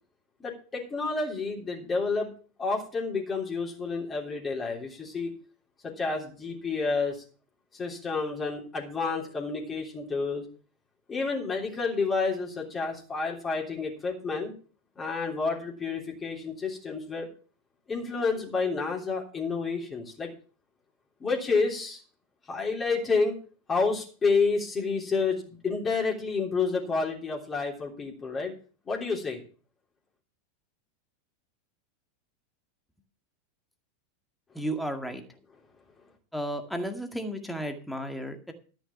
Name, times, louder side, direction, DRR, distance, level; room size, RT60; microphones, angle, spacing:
voice 1, 0.4-2.3 2.6-5.3 5.8-7.2 7.8-10.4 11.1-14.5 15.0-17.3 17.9-20.3 21.2-22.0 22.5-23.3 23.7-28.5 28.9-29.4, left 4 dB, 20° left, -1 dB, 3.4 m, -29 dB
voice 2, 34.5-35.2 36.3-38.5, equal, ahead, 5 dB, 2.0 m, -33 dB
13.0 x 6.2 x 7.0 m, 0.39 s
figure-of-eight pair, 85°, 0 cm